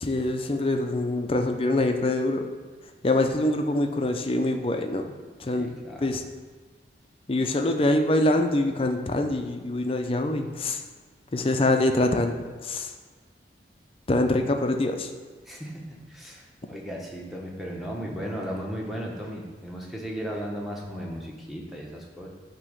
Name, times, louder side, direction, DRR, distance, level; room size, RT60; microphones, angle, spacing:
voice 1, 0.0-2.5 3.0-5.1 5.4-6.2 7.3-10.8 11.3-12.9 14.1-15.1, left 1 dB, 30° left, 5 dB, 0.6 m, -25 dB
voice 2, 5.5-6.1 15.5-22.3, equal, ahead, -3 dB, 1.0 m, -36 dB
8.8 x 3.0 x 6.5 m, 1.4 s
head